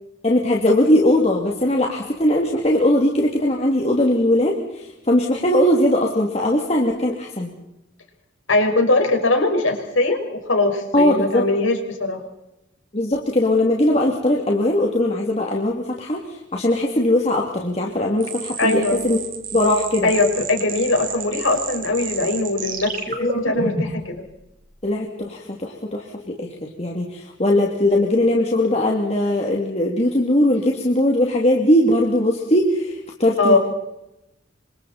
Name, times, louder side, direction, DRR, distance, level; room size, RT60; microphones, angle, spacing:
voice 1, 0.2-7.5 10.9-11.4 12.9-16.2 16.5-19.2 19.5-20.1 23.1-23.8 24.8-33.6, left 1 dB, 35° left, -1 dB, 2.8 m, -20 dB
voice 2, 8.5-12.2 18.6-19.0 20.0-24.2 33.4-33.6, left 2 dB, 85° left, 3 dB, 5.4 m, -21 dB
sound 1, 18.2-24.0, right 4 dB, 45° right, 4.9 m, -30 dB
30.0 x 25.5 x 4.4 m, 0.90 s
head